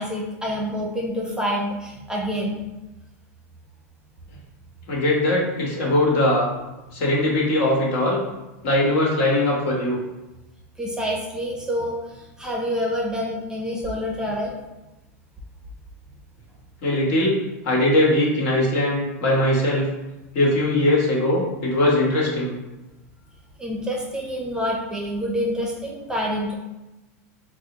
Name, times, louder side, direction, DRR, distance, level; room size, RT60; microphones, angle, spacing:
voice 1, 0.0-2.6 10.8-12.0 12.4-14.5 23.6-26.5, equal, 10° right, -2 dB, 0.6 m, -27 dB
voice 2, 4.9-6.5 6.9-8.2 8.6-10.0 16.8-17.4 17.6-19.9 20.3-22.6, left 1 dB, 65° left, -4 dB, 1.2 m, -20 dB
4.0 x 2.0 x 2.9 m, 1.0 s
hypercardioid pair, 110°, 8 cm